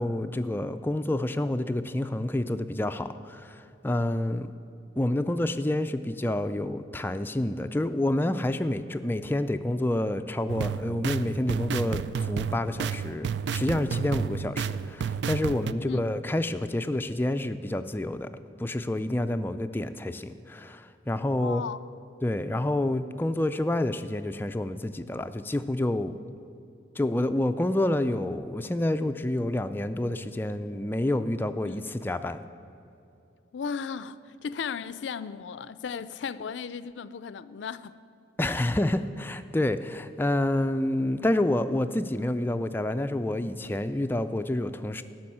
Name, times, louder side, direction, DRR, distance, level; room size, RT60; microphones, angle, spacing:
voice 1, 0.0-4.5 5.0-13.3 13.5-18.3 18.6-21.6 22.2-26.2 27.0-32.4 38.4-45.0, left 1 dB, 10° left, 0.3 m, -28 dB
sound 1, 10.5-15.7, right 6 dB, 75° right, 0.3 m, -31 dB
voice 2, 21.4-21.8 31.6-31.8 33.5-37.9, left 6 dB, 85° left, 0.4 m, -35 dB
12.0 x 6.2 x 8.6 m
head